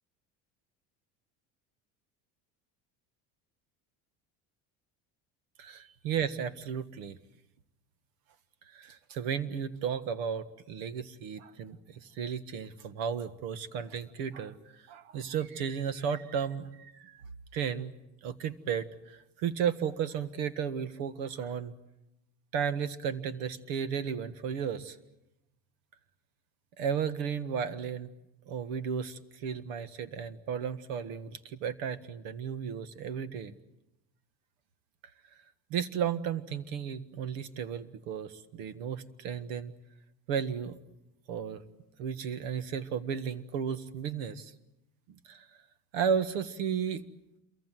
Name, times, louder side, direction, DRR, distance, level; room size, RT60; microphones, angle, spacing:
voice 1, 5.6-7.2 8.7-14.6 14.9-17.2 17.5-17.9 18.2-21.7 22.5-25.0 26.8-28.1 28.5-33.5 35.7-39.7 40.3-40.7 41.3-41.6 42.0-44.5 45.3-45.5 45.9-47.0, right 7 dB, 85° right, 13 dB, 1.6 m, -34 dB
27.5 x 23.5 x 7.6 m, 0.91 s
cardioid pair, 130°, 37 cm